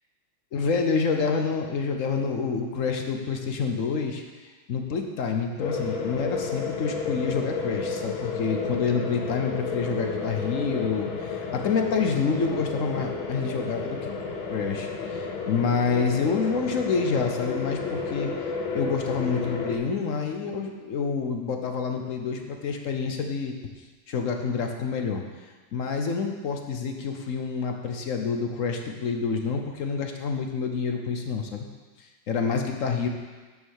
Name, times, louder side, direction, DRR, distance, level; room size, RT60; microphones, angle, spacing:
voice 1, 0.5-4.2 4.7-14.1 14.5-18.3 18.7-23.5 24.1-25.2 25.7-31.7 32.0-33.1, left 5 dB, 55° left, 4 dB, 0.9 m, -28 dB
sound 1, 5.6-19.8, left 4 dB, 85° left, 1.8 m, -32 dB
9.5 x 5.4 x 6.4 m, 1.3 s
omnidirectional pair, 2.1 m